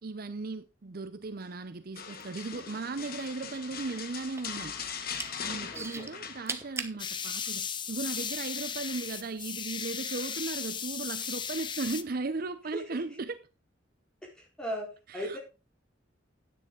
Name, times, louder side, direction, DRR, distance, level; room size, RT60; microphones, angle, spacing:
voice 1, 0.0-4.8 5.4-13.5 15.1-15.4, right 3 dB, 55° right, 0.7 m, -37 dB
sound 1, 2.0-7.0 7.2-7.6 8.0-9.1 10.2-10.7 11.2-11.3, left 7 dB, 55° left, 1.2 m, -41 dB
sound 2, 2.1-3.3 3.5-4.6 5.0-5.3 5.7-7.0 7.7-7.8, right 4 dB, 15° right, 0.9 m, -38 dB
voice 2, 5.7-6.1 12.7-12.8 14.6-14.9 15.1-15.4, equal, 5° left, 4.0 m, -35 dB
sound 3, 7.0-12.0, left 7 dB, 25° left, 0.6 m, -36 dB
10.0 x 9.2 x 3.8 m
head